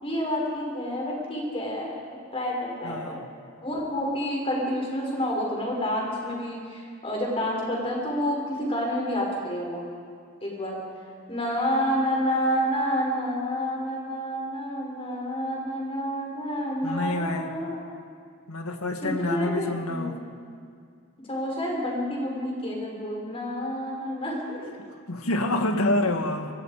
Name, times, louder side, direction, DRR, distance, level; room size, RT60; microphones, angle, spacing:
voice 1, 0.0-1.9 2.3-3.2 3.6-9.8 10.4-10.8 11.3-17.8 19.0-20.2 21.3-24.7, equal, 25° left, -2 dB, 5.2 m, -29 dB
voice 2, 2.8-3.3 16.8-17.6 18.5-20.2 24.6-26.5, left 2 dB, 80° left, 5 dB, 1.8 m, -28 dB
25.0 x 22.0 x 5.0 m, 2.2 s
head